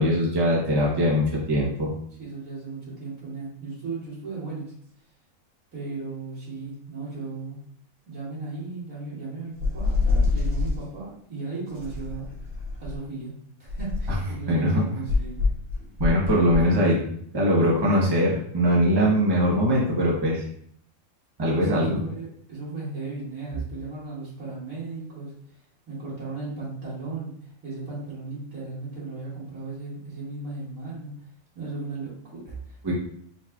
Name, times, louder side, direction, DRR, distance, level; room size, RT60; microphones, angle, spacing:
voice 1, 0.0-1.9 14.5-14.8 16.0-17.0 17.3-20.4 21.4-22.0 32.8-32.9, equal, 20° right, -4 dB, 1.0 m, -21 dB
voice 2, 2.2-4.7 5.7-7.6 8.1-12.3 12.8-15.4 21.6-25.3 25.9-31.1 31.5-32.9, right 3 dB, 90° right, -8 dB, 2.6 m, -36 dB
sound 1, 9.6-10.8 11.7-13.0 13.6-14.3 15.1-16.7, left 3 dB, 70° right, 1.8 m, -26 dB
4.7 x 4.1 x 2.4 m, 0.64 s
omnidirectional pair, 1.5 m